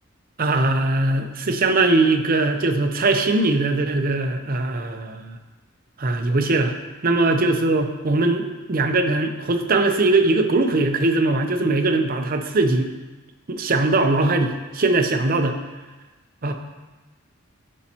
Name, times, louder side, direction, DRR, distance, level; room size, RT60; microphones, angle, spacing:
voice 1, 0.4-5.4 6.0-6.7 7.0-12.9 13.5-15.6 16.4-16.5, right 2 dB, 45° right, 6 dB, 0.6 m, -20 dB
12.5 x 5.3 x 2.9 m, 1.2 s
head